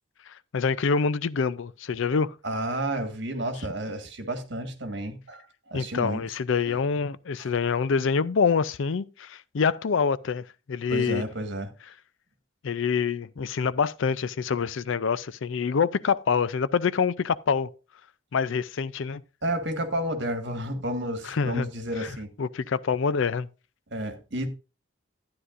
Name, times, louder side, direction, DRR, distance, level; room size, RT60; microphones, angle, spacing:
voice 1, 0.3-2.4 5.7-11.2 12.6-17.7 18.3-19.2 21.2-21.7 22.0-22.1 22.4-23.5, left 5 dB, 70° left, 0.4 m, -26 dB
voice 2, 2.4-6.2 6.7-6.8 7.4-7.5 10.9-11.7 19.4-22.3 23.9-24.5, right 1 dB, 55° right, 1.6 m, -31 dB
12.5 x 9.7 x 2.5 m
head